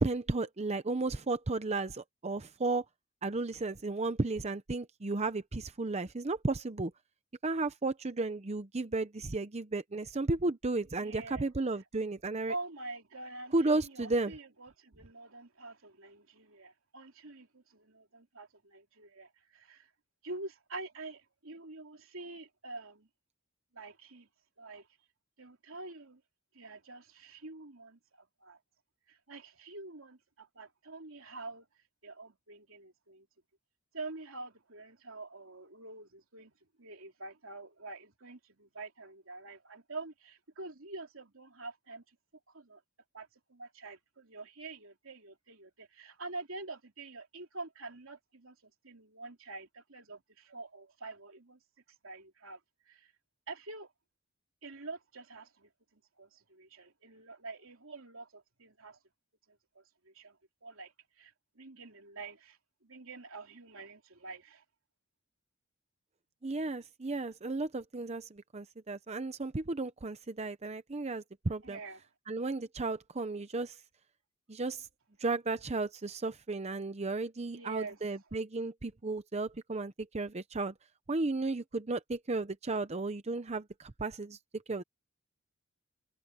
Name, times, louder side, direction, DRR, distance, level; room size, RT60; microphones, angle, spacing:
voice 1, 0.0-2.8 3.2-6.9 7.4-12.5 13.5-14.3 66.4-71.8 72.3-73.8 74.5-74.9 75.2-80.7 81.1-84.8, right 3 dB, 30° right, 0.7 m, -34 dB
voice 2, 11.0-11.5 12.5-19.9 20.2-23.1 23.7-24.3 24.6-24.9 25.4-26.2 26.5-28.6 29.1-31.6 32.0-33.3 33.9-36.5 36.8-42.2 42.5-42.8 43.1-51.6 51.9-52.6 52.9-53.1 53.5-53.9 54.6-59.0 59.5-64.6 71.6-72.0 77.5-78.0, right 3 dB, 85° right, 3.1 m, -46 dB
head